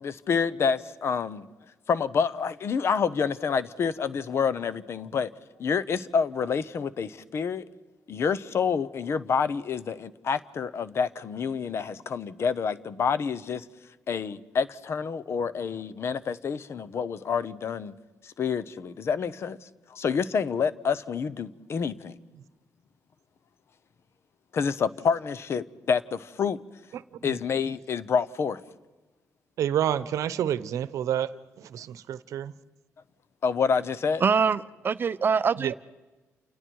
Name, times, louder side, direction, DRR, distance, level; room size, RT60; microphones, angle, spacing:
voice 1, 0.0-1.4 1.9-5.3 5.6-7.6 8.1-13.6 14.1-17.9 18.2-19.6 19.9-22.2 24.5-26.6 27.2-28.6 33.4-34.2, left 6 dB, 55° left, 0.9 m, -28 dB
voice 2, 26.9-27.4 29.6-31.3 31.7-32.5 35.6-35.7, right 10 dB, 80° right, 0.8 m, -29 dB
voice 3, 34.2-35.7, right 6 dB, 40° right, 0.7 m, -24 dB
29.0 x 28.5 x 4.7 m
cardioid pair, 110°, 5 cm